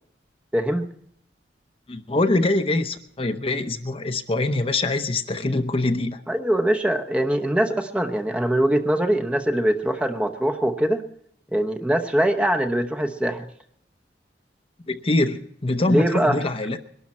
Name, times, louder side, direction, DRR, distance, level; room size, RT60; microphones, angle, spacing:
voice 1, 0.5-0.9 6.3-11.0 11.5-13.5 15.9-16.4, right 1 dB, 5° right, 4 dB, 0.9 m, -22 dB
voice 2, 1.9-6.2 14.9-16.8, left 2 dB, 30° left, 7 dB, 0.8 m, -24 dB
22.0 x 12.0 x 4.3 m, 0.70 s
head